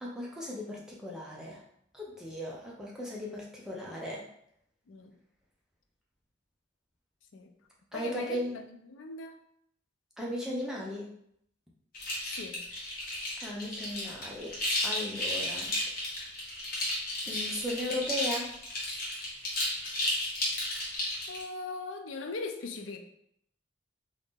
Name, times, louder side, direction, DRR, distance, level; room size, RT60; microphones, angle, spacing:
voice 1, 0.0-1.6 1.9-4.3 7.9-8.6 10.2-11.1 13.4-14.6 14.8-15.7 17.3-18.5, left 1 dB, 5° right, -4 dB, 0.6 m, -36 dB
voice 2, 7.9-8.6 8.9-9.4 12.3-12.6 21.3-23.0, left 3 dB, 85° left, 6 dB, 0.4 m, -39 dB
sound 1, 11.9-21.4, left 1 dB, 50° left, 1.0 m, -33 dB
2.7 x 2.6 x 3.6 m, 0.72 s
head